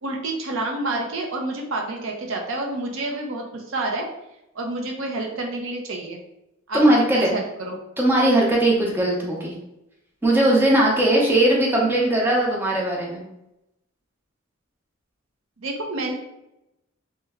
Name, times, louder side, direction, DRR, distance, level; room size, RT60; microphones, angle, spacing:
voice 1, 0.0-4.1 4.5-6.2 6.7-7.8 15.6-16.1, right 2 dB, 75° right, 1 dB, 0.6 m, -28 dB
voice 2, 6.7-7.3 8.0-9.6 10.2-13.2, right 1 dB, 10° right, -3 dB, 0.6 m, -19 dB
3.1 x 2.2 x 3.5 m, 0.88 s
head